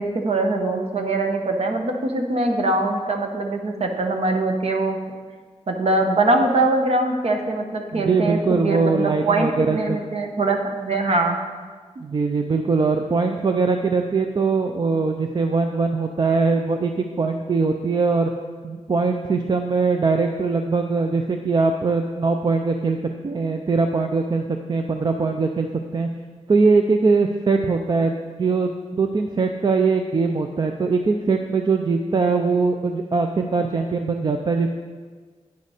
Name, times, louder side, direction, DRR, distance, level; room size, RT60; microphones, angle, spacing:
voice 1, 0.0-5.0 5.7-11.4, right 2 dB, 55° right, 3 dB, 1.0 m, -22 dB
voice 2, 7.9-10.0 12.0-18.3 18.6-23.0 23.2-26.1 26.5-34.7, right 4 dB, 35° right, 5 dB, 0.4 m, -21 dB
9.5 x 6.6 x 5.0 m, 1.5 s
wide cardioid pair, 140°, 12 cm